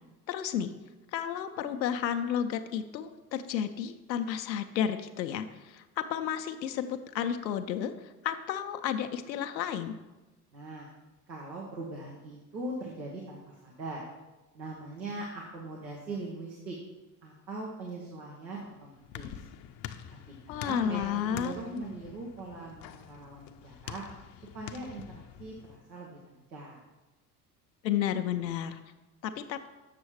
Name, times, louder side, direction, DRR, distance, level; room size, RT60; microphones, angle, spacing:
voice 1, 0.3-0.7 1.1-10.0 20.5-21.5 27.8-28.8 29.2-29.7, left 9 dB, 85° left, 7 dB, 0.6 m, -32 dB
voice 2, 10.5-10.9 11.3-14.0 14.5-16.8 17.2-19.3 20.5-24.0 24.5-26.8, right 2 dB, 90° right, -2 dB, 1.2 m, -41 dB
sound 1, 18.5-25.8, left 10 dB, 45° left, 0.6 m, -46 dB
7.4 x 6.2 x 4.7 m, 1.1 s
hypercardioid pair, 70°, 50 cm